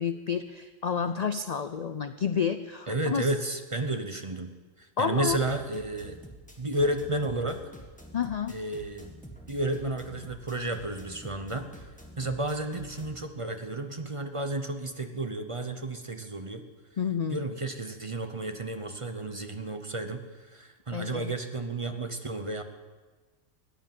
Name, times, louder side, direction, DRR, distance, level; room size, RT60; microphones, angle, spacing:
voice 1, 0.0-3.3 5.0-5.4 8.1-8.6 17.0-17.4 20.9-21.3, left 7 dB, 60° left, 10 dB, 0.4 m, -30 dB
voice 2, 2.9-4.5 4.8-6.2 6.6-7.7 8.5-9.1 9.5-11.7 12.2-16.6 17.3-22.6, right 2 dB, 30° right, 7 dB, 0.8 m, -32 dB
sound 1, 5.2-13.2, right 1 dB, 5° left, 1.5 m, -48 dB
15.0 x 10.0 x 7.4 m, 1.3 s
omnidirectional pair, 1.4 m